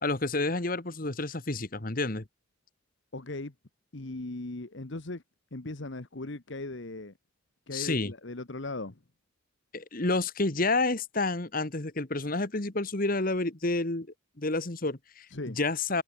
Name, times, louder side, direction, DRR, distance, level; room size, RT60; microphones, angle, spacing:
voice 1, 0.0-2.2 7.7-8.1 9.7-14.1 14.4-16.0, left 2 dB, 40° left, 1.5 m, -29 dB
voice 2, 3.1-3.5 3.9-5.2 5.5-7.1 7.7-9.0 15.3-15.6, left 2 dB, 60° left, 1.2 m, -38 dB
head